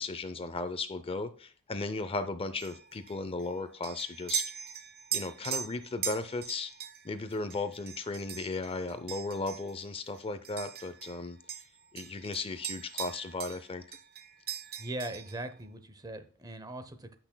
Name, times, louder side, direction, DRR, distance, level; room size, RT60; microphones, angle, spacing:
voice 1, 0.0-4.4 5.1-6.7 7.0-11.4 11.9-14.0, left 3 dB, 25° left, 11 dB, 0.5 m, -36 dB
sound 1, 2.6-11.2 11.5-13.7 13.9-15.4, right 8 dB, 50° right, 1.1 m, -40 dB
voice 2, 14.8-17.2, right 1 dB, 20° right, 10 dB, 0.8 m, -40 dB
14.5 x 6.1 x 2.2 m, 0.44 s
head